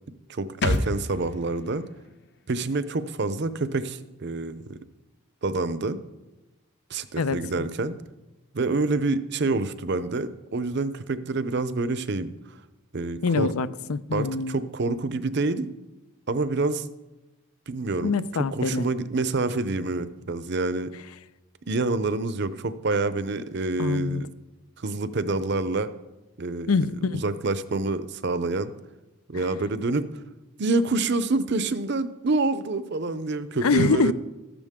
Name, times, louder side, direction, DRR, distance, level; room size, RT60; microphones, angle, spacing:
voice 1, 0.3-1.9 2.5-4.8 5.4-6.0 6.9-8.0 8.5-12.6 12.9-13.5 14.1-15.7 16.3-16.9 17.7-20.9 21.7-24.3 24.8-25.9 26.4-28.7 29.3-30.2 30.6-34.1, right 3 dB, 50° right, 0.6 m, -27 dB
sound 1, 0.6-4.1 4.4-4.5, left 2 dB, 50° left, 0.7 m, -32 dB
voice 2, 13.2-14.6 18.0-18.9 23.8-24.2 26.7-27.2 33.6-34.1, left 4 dB, 85° left, 0.6 m, -24 dB
13.5 x 12.0 x 3.7 m
head